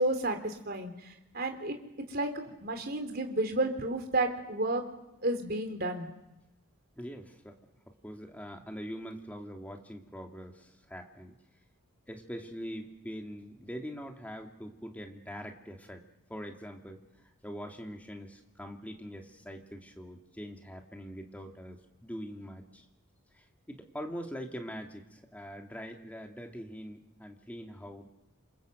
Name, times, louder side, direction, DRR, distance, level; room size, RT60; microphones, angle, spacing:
voice 1, 0.0-1.8 2.1-4.8 5.2-6.1, right 2 dB, 45° right, 6 dB, 3.6 m, -31 dB
voice 2, 7.0-7.6 8.0-11.3 12.1-16.0 16.3-22.9 23.3-28.1, equal, 5° left, 3 dB, 2.6 m, -43 dB
28.5 x 26.0 x 8.0 m, 0.93 s
head